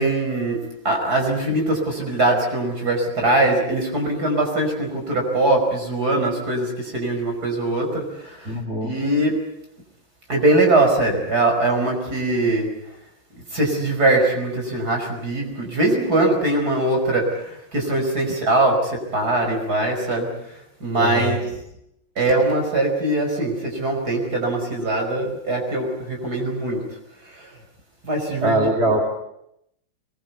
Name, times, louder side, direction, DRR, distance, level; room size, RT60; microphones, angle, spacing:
voice 1, 0.0-9.4 10.3-12.7 13.5-21.4 22.2-26.8 27.3-27.5 28.0-28.6, right 2 dB, 50° right, 2 dB, 5.8 m, -22 dB
voice 2, 8.5-8.9 21.0-21.3 28.4-29.1, right 1 dB, 30° right, 0 dB, 3.1 m, -22 dB
23.0 x 21.5 x 8.2 m, 0.79 s
omnidirectional pair, 2.2 m